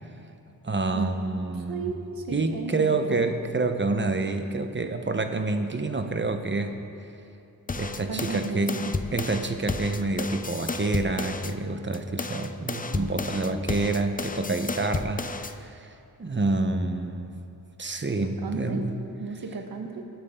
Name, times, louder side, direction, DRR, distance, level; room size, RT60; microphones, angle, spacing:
voice 1, 0.6-2.0 2.3-6.8 7.8-8.8 9.1-15.9 16.2-17.3 17.8-18.9 19.8-20.0, right 3 dB, 30° right, 7 dB, 1.0 m, -28 dB
voice 2, 1.7-3.3 8.1-8.9 12.9-13.7 18.2-18.9 19.2-20.0, right 4 dB, 65° right, 2 dB, 1.4 m, -35 dB
sound 1, 7.7-11.5 11.9-15.5, left 3 dB, 20° left, 0.5 m, -32 dB
21.0 x 9.5 x 3.8 m, 2.7 s
wide cardioid pair, 90°, 38 cm